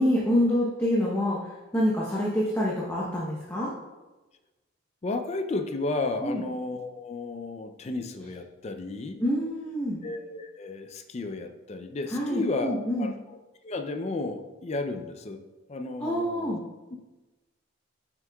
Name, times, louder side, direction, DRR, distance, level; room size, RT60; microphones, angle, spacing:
voice 1, 0.0-1.4 1.7-3.7 6.2-6.4 9.2-10.0 12.1-13.1 16.0-16.6, equal, 10° left, -6 dB, 0.8 m, -26 dB
voice 2, 5.0-9.2 10.0-13.4 13.6-15.4 15.7-16.6, left 2 dB, 30° left, 6 dB, 0.4 m, -33 dB
7.2 x 6.0 x 2.3 m, 1.2 s
head